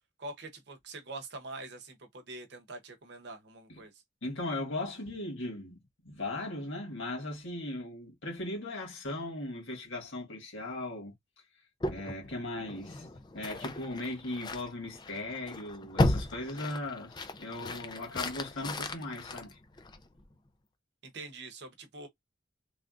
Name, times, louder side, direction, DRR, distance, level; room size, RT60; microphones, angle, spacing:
voice 1, 0.2-4.0 21.0-22.1, right 2 dB, 55° right, 0.8 m, -44 dB
voice 2, 4.2-11.1 11.9-13.1 13.3-19.6, left 2 dB, 75° left, 1.7 m, -38 dB
sound 1, 11.8-20.2, left 2 dB, 20° left, 0.4 m, -35 dB
3.3 x 2.4 x 2.4 m
head